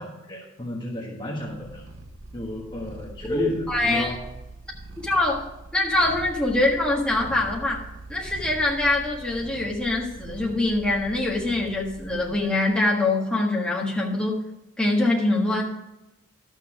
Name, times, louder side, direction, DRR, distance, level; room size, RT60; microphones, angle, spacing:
voice 1, 0.0-1.8 2.3-4.3, equal, 20° left, -2 dB, 1.3 m, -33 dB
Purr, 1.5-12.7, right 2 dB, 70° right, 1.1 m, -42 dB
voice 2, 3.7-4.1 5.0-5.4 5.7-7.8 8.1-14.4 14.8-15.6, left 2 dB, 5° left, -4 dB, 1.6 m, -24 dB
12.0 x 6.4 x 4.9 m, 0.98 s
head